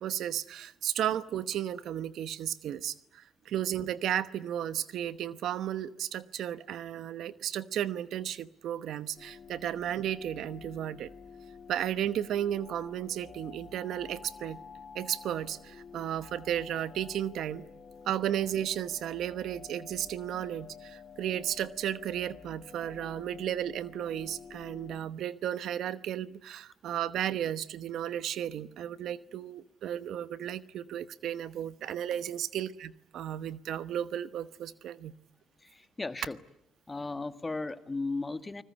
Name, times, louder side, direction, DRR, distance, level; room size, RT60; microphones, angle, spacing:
voice 1, 0.0-11.1 11.7-14.6 14.9-17.6 18.1-35.1, right 10 dB, 75° right, 14 dB, 1.0 m, -34 dB
sound 1, 9.2-25.0, left 6 dB, 50° left, 3.1 m, -50 dB
voice 2, 35.6-36.4 36.9-38.6, left 3 dB, 25° left, 10 dB, 1.8 m, -36 dB
29.0 x 20.5 x 9.8 m, 0.80 s
supercardioid pair, 65°, 0 cm